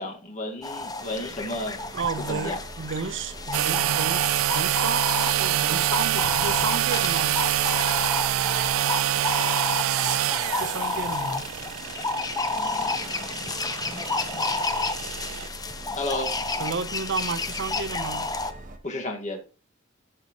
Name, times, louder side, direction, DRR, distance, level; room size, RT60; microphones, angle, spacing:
voice 1, 0.0-1.8 2.3-2.6 15.9-16.3 18.8-19.4, left 1 dB, 40° left, 1.7 m, -32 dB
sound 1, 0.6-18.5, left 3 dB, 20° left, 0.7 m, -31 dB
sound 2, 1.0-18.8, right 2 dB, 40° right, 1.3 m, -43 dB
voice 2, 1.9-4.2 4.5-7.3 10.6-11.4 16.6-18.3, right 4 dB, 65° right, 0.8 m, -32 dB
sound 3, 3.5-15.5, right 12 dB, 85° right, 0.3 m, -26 dB
13.5 x 6.5 x 3.0 m
head